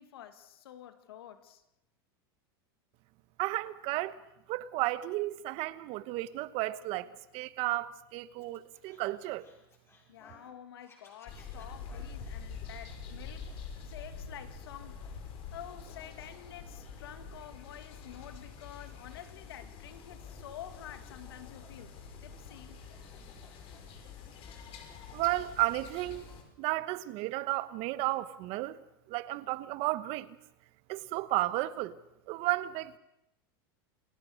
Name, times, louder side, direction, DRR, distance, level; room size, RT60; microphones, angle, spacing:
voice 1, 0.0-1.6 10.1-13.5 13.8-15.1 15.5-22.0 22.2-22.8, left 10 dB, 80° left, 2.5 m, -49 dB
voice 2, 3.4-4.2 4.5-9.5 25.1-26.3 26.6-28.8 29.1-30.4 30.9-32.0 32.3-33.0, right 18 dB, 50° right, 1.2 m, -33 dB
Scratching (performance technique), 8.4-10.5 10.8-12.4, left 3 dB, 20° left, 7.0 m, -60 dB
sound 1, 11.3-26.4, left 5 dB, 45° left, 5.5 m, -46 dB
28.5 x 17.5 x 6.7 m
supercardioid pair, 120°, 13 cm